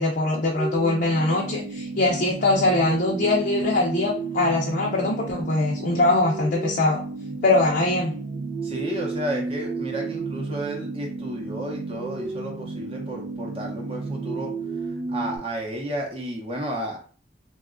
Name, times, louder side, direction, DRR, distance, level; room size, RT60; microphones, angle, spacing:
voice 1, 0.0-7.0 7.4-8.1, left 2 dB, 50° left, -3 dB, 0.5 m, -22 dB
sound 1, 0.5-15.4, right 3 dB, 80° right, 0.4 m, -32 dB
voice 2, 8.6-14.5 15.1-17.0, right 1 dB, 30° right, -1 dB, 0.7 m, -32 dB
2.9 x 2.2 x 2.4 m, 0.41 s
head